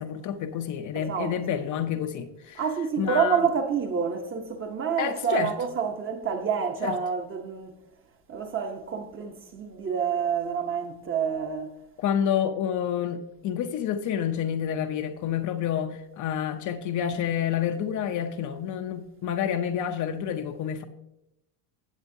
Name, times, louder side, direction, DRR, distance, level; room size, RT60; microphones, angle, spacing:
voice 1, 0.0-2.6 3.0-3.4 5.0-5.5 6.8-7.0 12.0-20.8, left 9 dB, 40° left, 0.7 m, -29 dB
voice 2, 0.9-1.6 2.5-7.8 8.3-11.8, right 6 dB, 25° right, 0.9 m, -28 dB
16.5 x 7.8 x 2.7 m
cardioid pair, 135°, 47 cm